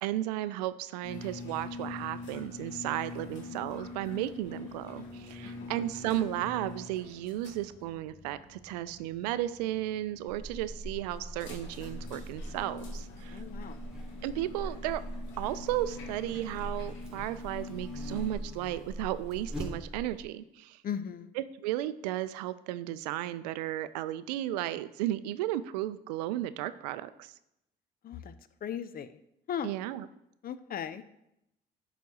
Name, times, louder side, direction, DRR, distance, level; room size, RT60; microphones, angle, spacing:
voice 1, 0.0-13.4 14.2-15.1 15.4-20.8 21.4-27.3 29.6-30.1, right 14 dB, 85° right, 15 dB, 0.4 m, -34 dB
sound 1, 1.0-18.3, left 3 dB, 70° left, 1.9 m, -45 dB
Buzz, 10.3-20.2, equal, 5° right, 2.9 m, -42 dB
voice 2, 13.3-13.8 20.8-21.3 28.0-28.3 28.6-29.2 29.5-29.7 30.4-31.0, left 8 dB, 45° left, 14 dB, 0.6 m, -37 dB
10.5 x 4.1 x 4.7 m, 0.83 s
hypercardioid pair, 50°, 20 cm